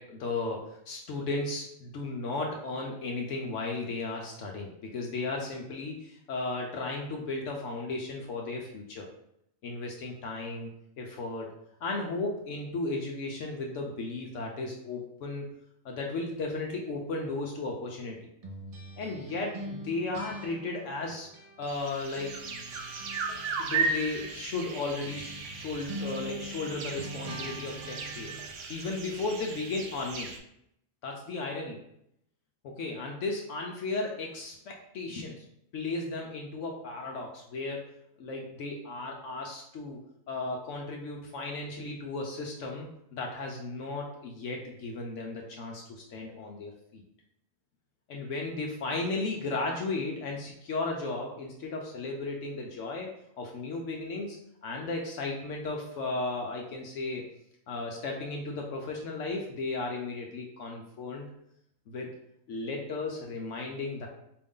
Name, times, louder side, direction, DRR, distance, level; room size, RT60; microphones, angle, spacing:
voice 1, 0.0-9.1 9.6-10.7 11.0-11.5 11.8-15.5 15.8-18.2 19.0-21.3 21.6-22.4 23.6-28.3 28.7-30.3 31.0-31.8 32.6-35.4 35.7-37.9 38.2-47.0 48.1-57.3 57.7-61.3 61.9-62.1 62.5-64.1, left 3 dB, 70° left, 0 dB, 1.0 m, -35 dB
sound 1, 18.4-21.9 22.2-28.6, equal, 45° right, 0.4 m, -43 dB
sound 2, 21.7-30.4, right 4 dB, 70° right, 0.9 m, -36 dB
4.6 x 2.6 x 3.6 m, 0.75 s
omnidirectional pair, 1.4 m